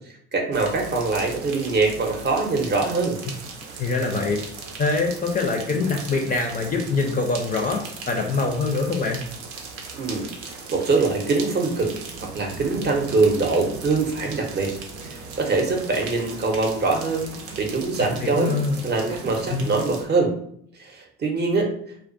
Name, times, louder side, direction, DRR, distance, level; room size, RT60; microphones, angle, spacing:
voice 1, 0.3-3.2 9.9-10.3 10.7-11.9 12.3-14.7 15.0-17.3 17.6-18.5 18.8-20.3 20.8-21.7, right 3 dB, 30° right, 1 dB, 0.6 m, -23 dB
sound 1, 0.5-20.1, right 4 dB, 80° right, 0.6 m, -38 dB
voice 2, 3.8-4.4 4.8-9.3 18.0-18.8 19.5-19.7, left 3 dB, 25° left, 2 dB, 0.4 m, -24 dB
2.3 x 2.2 x 2.5 m, 0.66 s
hypercardioid pair, 65°, 32 cm